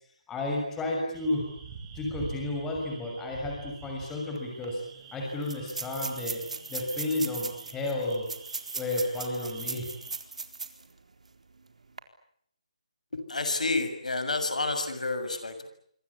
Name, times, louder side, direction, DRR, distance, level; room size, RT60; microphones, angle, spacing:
voice 1, 0.3-1.5 1.9-4.8 5.1-6.4 6.7-8.3 8.7-9.9, left 2 dB, 10° left, 0 dB, 6.3 m, -32 dB
sound 1, 1.1-10.1, right 5 dB, 20° right, 6.0 m, -47 dB
sound 2, 4.4-4.5 4.6-4.7 5.4-10.9 11.3-11.4 11.8-12.0, right 4 dB, 80° right, 4.1 m, -38 dB
voice 2, 13.1-15.7, left 3 dB, 85° left, 9 dB, 6.8 m, -30 dB
26.0 x 25.5 x 8.4 m, 0.67 s
hypercardioid pair, 170°, 4 cm